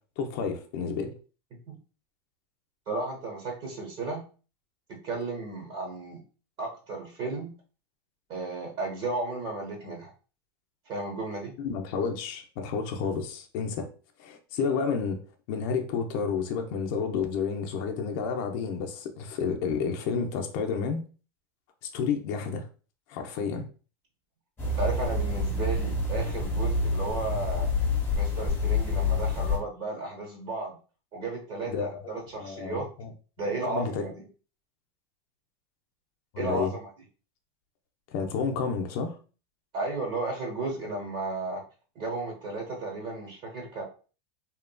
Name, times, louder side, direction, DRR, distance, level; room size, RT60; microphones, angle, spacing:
voice 1, 0.2-1.1 11.6-13.9 14.2-15.2 15.5-21.0 21.9-22.7 23.1-23.7 31.7-32.0 32.3-33.1 33.6-34.2 36.3-36.7 38.1-39.2, left 5 dB, 60° left, 0.5 m, -30 dB
voice 2, 2.9-4.2 4.9-6.2 6.6-7.5 8.3-10.1 10.9-11.5 24.6-27.7 28.1-30.8 31.1-32.9 33.4-34.2 36.4-36.9 39.7-41.6 41.9-43.8, right 2 dB, 45° right, 0.9 m, -34 dB
sound 1, 24.6-29.6, left 3 dB, 20° left, 0.9 m, -27 dB
2.8 x 2.4 x 2.2 m
supercardioid pair, 120°, 13 cm